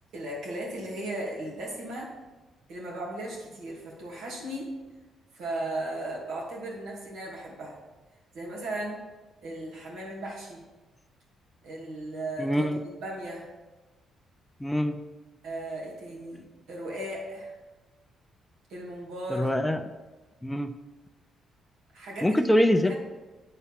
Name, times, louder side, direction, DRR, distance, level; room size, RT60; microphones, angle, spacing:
voice 1, 0.1-2.1 2.7-4.7 5.3-7.7 8.3-9.0 9.4-10.6 11.6-12.7 13.0-13.5 15.4-17.5 18.7-19.5 21.9-22.4 22.9-23.0, right 1 dB, 85° right, -4 dB, 2.4 m, -36 dB
voice 2, 12.4-12.8 14.6-15.0 19.3-19.8 20.4-20.7 22.2-22.9, equal, 10° left, 9 dB, 0.4 m, -24 dB
8.7 x 4.2 x 5.7 m, 1.2 s
cardioid pair, 90°, 0 cm